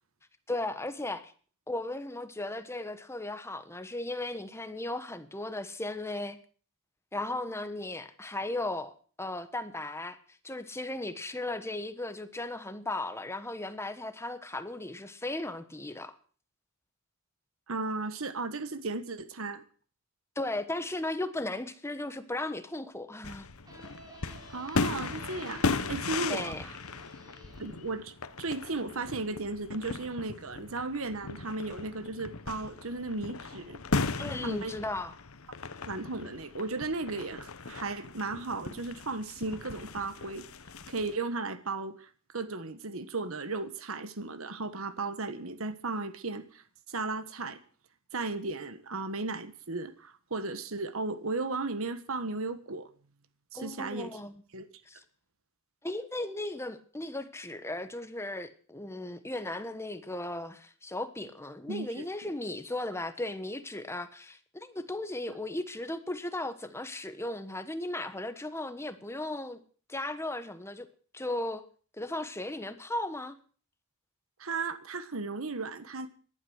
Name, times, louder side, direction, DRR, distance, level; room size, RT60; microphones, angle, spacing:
voice 1, 0.5-1.3 1.7-6.4 7.1-10.2 10.4-16.1 20.4-23.5 26.3-26.7 34.1-35.1 53.5-54.3 54.9-55.0 55.8-69.6 69.9-70.9 71.1-71.6 71.9-73.4, left 2 dB, 10° left, 1.3 m, -36 dB
voice 2, 17.7-19.6 24.5-26.8 27.6-33.8 34.4-34.7 35.8-40.4 40.9-47.6 48.1-52.9 53.5-54.2 54.5-54.7 61.7-62.1 74.4-76.1, right 3 dB, 70° right, 1.4 m, -35 dB
sound 1, 23.2-41.2, left 3 dB, 75° left, 1.1 m, -37 dB
sound 2, 23.6-29.1, right 1 dB, 20° right, 5.0 m, -52 dB
18.0 x 11.5 x 6.4 m
head